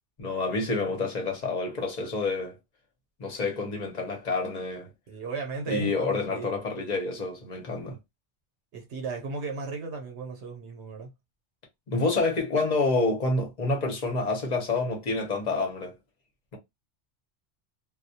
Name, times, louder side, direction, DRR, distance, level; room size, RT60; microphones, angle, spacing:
voice 1, 0.2-2.6 3.2-4.9 5.7-8.0 11.9-15.9, left 3 dB, 40° left, 0.8 m, -28 dB
voice 2, 5.1-6.6 8.7-11.1, right 4 dB, 75° right, 0.9 m, -35 dB
2.2 x 2.1 x 2.7 m
omnidirectional pair, 1.2 m